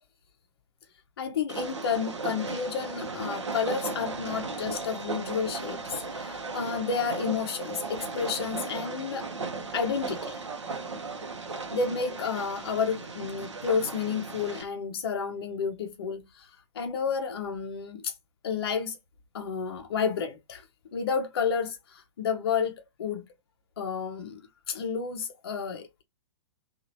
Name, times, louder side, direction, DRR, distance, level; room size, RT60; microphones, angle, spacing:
voice 1, 1.2-9.3 9.7-10.4 11.7-18.1 18.4-19.0 19.3-20.6 20.9-23.2 23.8-24.4 24.7-26.0, left 6 dB, 55° left, 0.6 m, -31 dB
Train, 1.5-14.6, right 3 dB, 75° right, 0.7 m, -36 dB
2.9 x 2.3 x 2.7 m
figure-of-eight pair, 110°, 15 cm